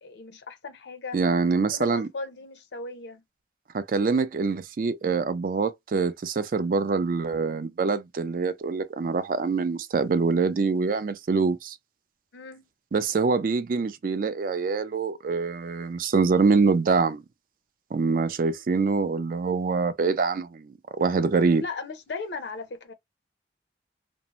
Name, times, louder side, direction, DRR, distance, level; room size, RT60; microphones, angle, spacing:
voice 1, 0.0-1.2 1.7-3.2 12.3-12.7 21.6-22.9, left 4 dB, 75° left, 0.6 m, -37 dB
voice 2, 1.1-2.1 3.7-11.8 12.9-17.2 17.9-21.6, right 4 dB, 50° right, 0.3 m, -25 dB
2.6 x 2.0 x 2.9 m
head